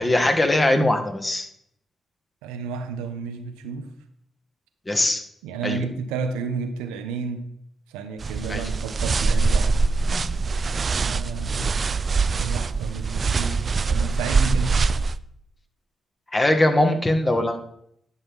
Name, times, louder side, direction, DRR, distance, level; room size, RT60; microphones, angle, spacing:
voice 1, 0.0-1.5 4.9-5.2 5.6-5.8 8.5-8.7 16.3-17.6, left 1 dB, 30° left, 6 dB, 1.5 m, -21 dB
voice 2, 2.4-3.9 5.4-7.4 7.9-9.7 11.0-11.7 12.3-14.7, right 5 dB, 85° right, 7 dB, 0.7 m, -31 dB
sound 1, 8.2-15.2, right 4 dB, 50° right, 0.3 m, -23 dB
11.0 x 5.9 x 3.6 m, 0.73 s
hypercardioid pair, 40°, 0 cm